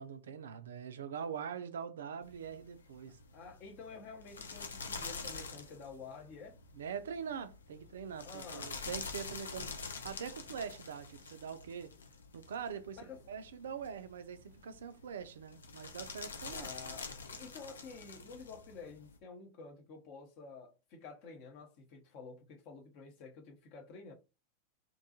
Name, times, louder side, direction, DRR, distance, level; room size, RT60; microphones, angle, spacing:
voice 1, 0.0-3.2 6.7-11.9 12.3-13.0 13.3-16.7, right 7 dB, 65° right, 0.3 m, -43 dB
sound 1, 2.2-19.2, left 4 dB, 70° left, 0.4 m, -47 dB
voice 2, 3.3-6.6 8.2-8.8 12.9-13.2 16.5-24.1, left 4 dB, 45° left, 0.7 m, -50 dB
2.6 x 2.3 x 2.7 m
figure-of-eight pair, 90°, 0 cm